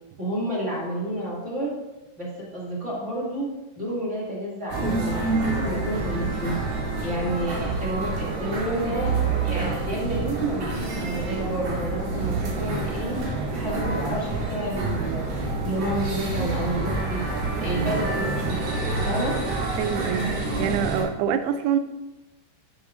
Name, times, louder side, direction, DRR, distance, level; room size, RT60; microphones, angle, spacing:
voice 1, 0.2-1.7 2.2-6.6 7.0-17.2 17.6-18.6 19.0-19.4, right 1 dB, 25° right, -6 dB, 1.7 m, -30 dB
sound 1, 4.7-21.0, right 3 dB, 65° right, 3.5 m, -27 dB
voice 2, 19.8-21.8, right 8 dB, 85° right, 10 dB, 2.4 m, -25 dB
10.5 x 10.0 x 2.6 m, 1.0 s
omnidirectional pair, 5.1 m